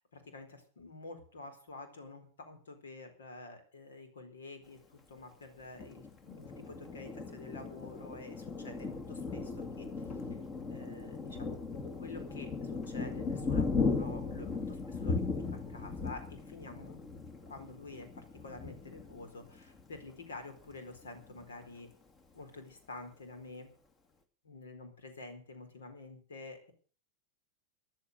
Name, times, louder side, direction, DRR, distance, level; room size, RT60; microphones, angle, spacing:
voice 1, 0.0-4.8 5.1-10.4 10.7-11.6 12.0-15.4 15.7-17.0 17.5-21.9 22.3-23.7 24.4-26.7, left 3 dB, 65° left, 8 dB, 4.4 m, -49 dB
Thunder, 5.8-20.1 20.6-20.7 21.0-21.6, left 4 dB, 25° left, 2.4 m, -37 dB
14.5 x 11.5 x 6.7 m, 0.39 s
figure-of-eight pair, 90°, 0 cm